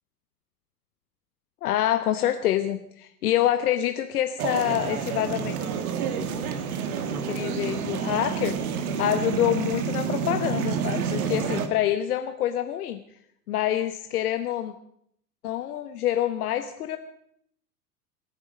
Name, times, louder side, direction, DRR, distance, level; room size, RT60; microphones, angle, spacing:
voice 1, 1.6-5.6 7.3-8.6 9.0-13.0 13.5-14.7 15.4-17.0, left 12 dB, 65° left, 8 dB, 1.2 m, -26 dB
sound 1, 4.4-11.7, right 7 dB, 65° right, 2.0 m, -29 dB
26.5 x 10.5 x 5.3 m, 0.70 s
figure-of-eight pair, 85°, 47 cm